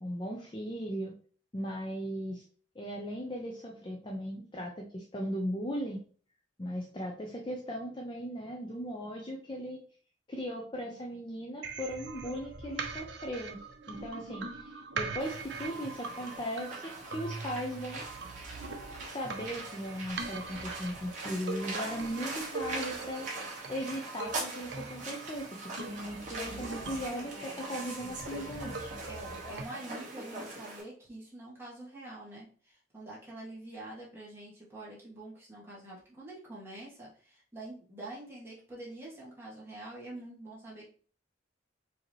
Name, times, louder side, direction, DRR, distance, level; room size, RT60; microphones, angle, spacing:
voice 1, 0.0-1.1 1.5-2.4 2.8-6.0 6.6-9.8 10.3-13.6 13.9-18.0 19.0-23.3 23.7-28.8, equal, 25° left, -1 dB, 0.5 m, -38 dB
sound 1, 11.6-29.6, right 4 dB, 60° right, 0.7 m, -42 dB
sound 2, 15.2-30.8, right 2 dB, 40° right, 1.4 m, -42 dB
voice 2, 24.8-25.2 25.8-26.0 29.1-40.8, right 2 dB, 10° right, -7 dB, 1.6 m, -46 dB
4.8 x 2.9 x 3.1 m, 0.42 s
head